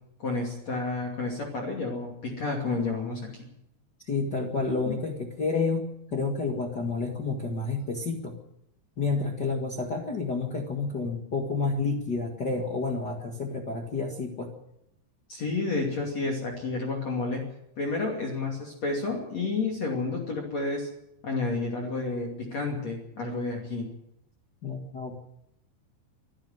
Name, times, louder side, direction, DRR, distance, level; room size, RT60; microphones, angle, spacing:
voice 1, 0.2-3.5 4.9-5.0 15.3-17.4 17.8-20.9 21.2-23.9, left 3 dB, 40° left, 1 dB, 3.4 m, -30 dB
voice 2, 4.0-5.8 6.1-8.3 9.0-14.5 24.6-25.2, left 4 dB, 55° left, 1 dB, 1.1 m, -30 dB
24.0 x 11.5 x 9.3 m, 0.80 s
omnidirectional pair, 5.2 m